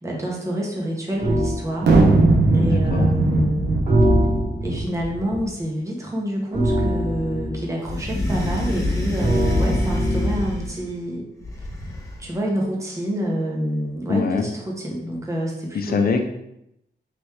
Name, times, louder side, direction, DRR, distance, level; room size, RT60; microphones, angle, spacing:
voice 1, 0.0-2.1 2.5-3.8 4.6-11.2 12.2-16.0, equal, 15° right, -2 dB, 0.9 m, -27 dB
sound 1, 1.2-1.6 3.9-4.8 6.5-7.6 9.2-10.6, equal, 35° right, 1.3 m, -22 dB
sound 2, 1.8-5.4, right 2 dB, 65° right, 0.8 m, -19 dB
voice 2, 2.6-3.1 14.1-14.5 15.7-16.2, left 5 dB, 55° left, 5 dB, 0.5 m, -23 dB
sound 3, 7.8-10.9 11.4-12.3, left 1 dB, 15° left, 0.8 m, -26 dB
4.3 x 3.3 x 3.2 m, 0.80 s
wide cardioid pair, 175°, 19 cm